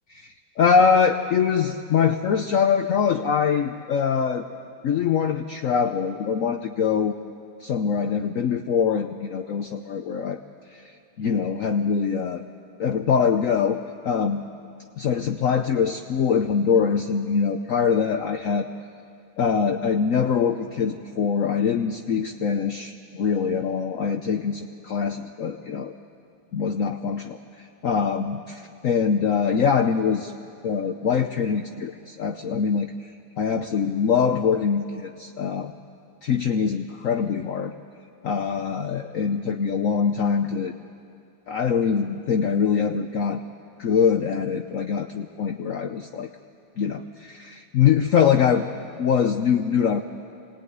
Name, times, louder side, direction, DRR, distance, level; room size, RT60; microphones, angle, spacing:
voice 1, 0.1-4.4 4.8-7.1 7.6-10.4 10.7-10.9 11.2-12.4 12.8-14.4 15.0-18.7 19.4-25.9 26.5-30.3 30.6-32.9 33.4-35.7 36.2-37.7 38.2-40.7 41.5-43.4 43.8-46.3 46.8-48.6 49.0-50.0, left 6 dB, 55° left, 6 dB, 1.0 m, -23 dB
25.5 x 19.0 x 9.5 m, 2.5 s
omnidirectional pair, 2.0 m